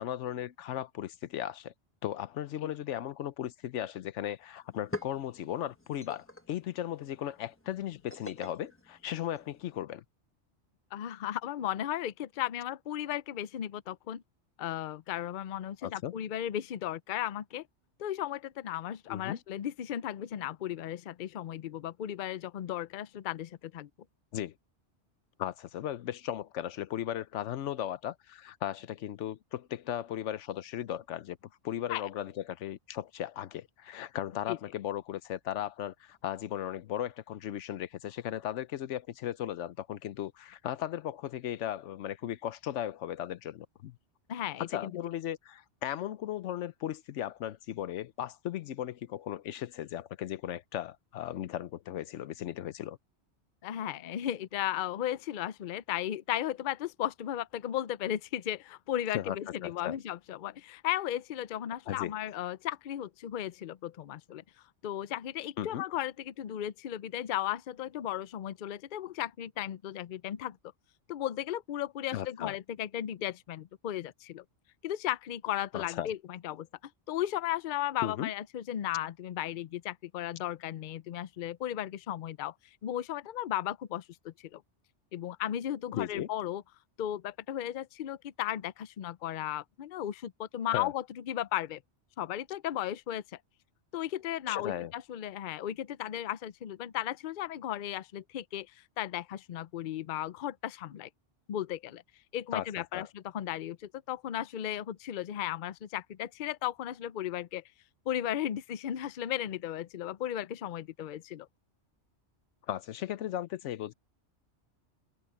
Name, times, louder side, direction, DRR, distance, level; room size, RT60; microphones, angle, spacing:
voice 1, 0.0-1.7 2.0-10.0 15.8-16.1 19.1-19.4 24.3-24.5 25.4-31.4 31.6-44.0 44.7-53.0 59.1-60.0 61.9-62.1 65.6-65.8 72.1-72.6 75.7-76.1 78.0-78.3 85.9-86.3 90.7-90.9 94.5-94.9 102.5-102.7 102.9-103.1 112.7-113.9, left 11 dB, 85° left, 1.0 m, -36 dB
sound 1, 4.2-4.3 4.6-9.8, left 2 dB, 10° left, 1.1 m, -46 dB
voice 2, 10.9-14.2 14.6-17.7 18.0-23.9 31.9-32.1 34.5-34.6 44.3-45.0 53.6-64.4 64.8-70.6 71.1-74.4 74.8-76.7 77.1-82.5 82.8-84.6 85.1-86.6 87.0-91.8 92.2-93.2 93.9-101.1 101.5-102.0 102.3-107.6 108.1-111.5, left 12 dB, 55° left, 0.6 m, -35 dB
omnidirectional pair, 1.2 m